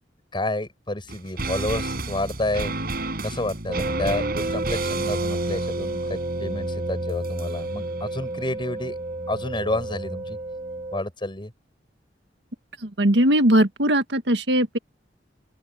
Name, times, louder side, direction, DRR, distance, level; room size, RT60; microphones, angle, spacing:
voice 1, 0.3-2.8 3.2-9.0 9.3-10.4 10.9-11.5, left 1 dB, 30° left, 7.5 m, -29 dB
sound 1, 1.1-10.5 10.7-10.8, right 2 dB, 60° right, 6.7 m, -32 dB
sound 2, 3.7-11.0, right 2 dB, 40° right, 2.3 m, -32 dB
voice 2, 12.8-14.8, right 1 dB, 75° right, 1.8 m, -20 dB
open air
head